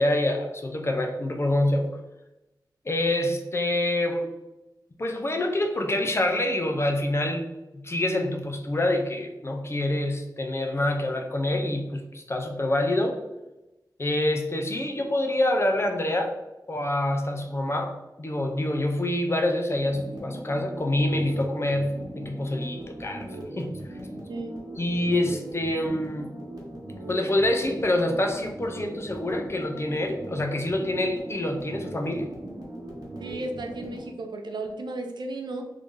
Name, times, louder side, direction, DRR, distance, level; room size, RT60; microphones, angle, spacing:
voice 1, 0.0-1.9 2.9-4.3 5.0-13.2 14.0-16.3 16.7-23.3 23.6-23.8 24.8-26.3 27.1-32.3, left 1 dB, 35° left, 3 dB, 0.5 m, -26 dB
sound 1, 19.8-34.1, right 1 dB, 60° right, 1.2 m, -39 dB
voice 2, 33.2-35.6, right 2 dB, 80° right, 4 dB, 0.5 m, -34 dB
3.2 x 2.7 x 3.6 m, 1.0 s
wide cardioid pair, 95°, 7 cm